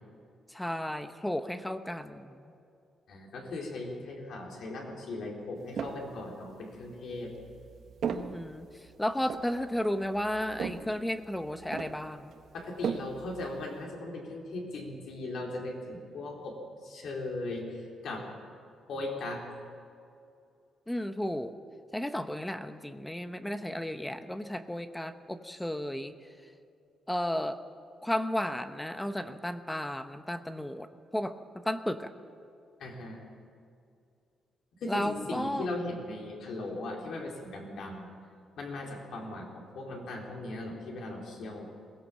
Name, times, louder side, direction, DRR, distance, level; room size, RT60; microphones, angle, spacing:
voice 1, 0.5-2.5 8.0-8.7 9.0-12.3 20.9-21.5 21.9-26.1 27.1-27.6 28.0-32.1 34.9-35.7, left 1 dB, 5° left, 9 dB, 0.9 m, -33 dB
voice 2, 3.1-7.3 12.5-18.3 18.9-19.4 32.8-33.2 34.8-38.1 38.6-41.7, left 2 dB, 65° left, 0 dB, 4.2 m, -38 dB
sound 1, 5.6-6.1 6.7-13.8, right 7 dB, 60° right, 1.3 m, -39 dB
22.0 x 17.5 x 7.5 m, 2.5 s
cardioid pair, 140°, 0 cm